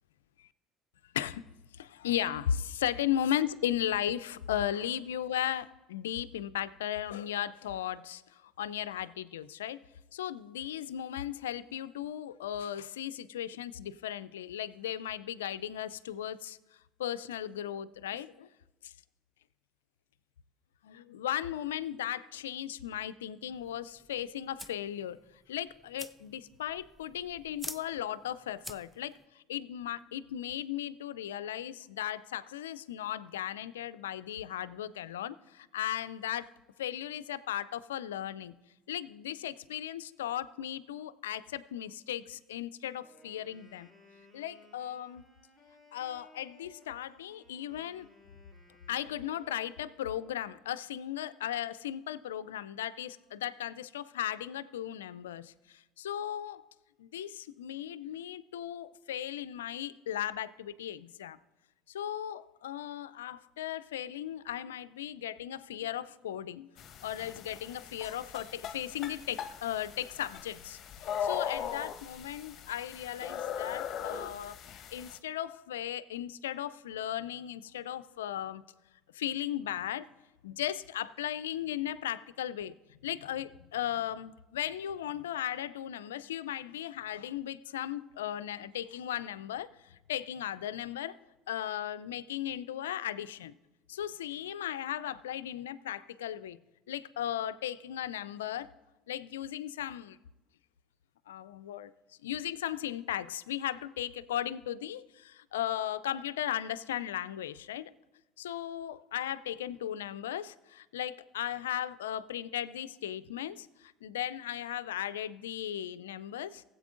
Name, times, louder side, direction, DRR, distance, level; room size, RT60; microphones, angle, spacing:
voice 1, 1.1-1.5 1.7-9.8 10.1-16.6 17.0-18.5 18.8-18.9 20.8-25.2 25.5-36.5 36.8-38.5 38.9-43.9 44.3-45.2 45.9-48.1 48.9-56.7 57.0-61.4 61.9-66.7 67.0-74.6 74.9-78.6 79.1-80.1 80.4-91.2 91.5-93.5 93.9-96.6 96.9-98.7 99.1-100.2 101.3-101.9 102.2-107.9 108.4-116.6, left 11 dB, 80° left, 0.4 m, -36 dB
sound 1, 23.5-29.2, equal, ahead, 0.5 m, -49 dB
Wind instrument woodwind instrument, 43.0-50.6, equal, 20° right, 3.1 m, -61 dB
sound 2, 66.8-75.2, left 8 dB, 50° left, 0.8 m, -39 dB
19.5 x 8.0 x 2.5 m
hypercardioid pair, 70°, 0 cm